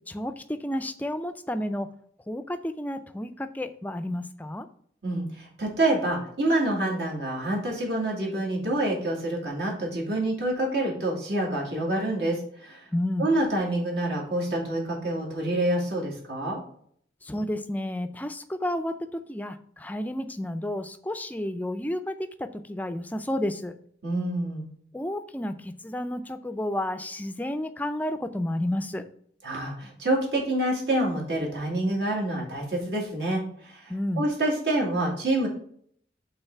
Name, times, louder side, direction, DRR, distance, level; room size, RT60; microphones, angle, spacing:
voice 1, 0.1-1.9 2.3-4.7 12.9-13.3 17.2-19.0 19.3-22.1 22.4-23.7 24.9-29.0 33.9-34.3, left 1 dB, 10° left, 9 dB, 0.4 m, -31 dB
voice 2, 5.0-12.9 13.2-16.6 24.0-24.7 29.4-35.5, right 1 dB, 75° right, -2 dB, 2.4 m, -27 dB
5.7 x 3.9 x 5.4 m, 0.63 s
head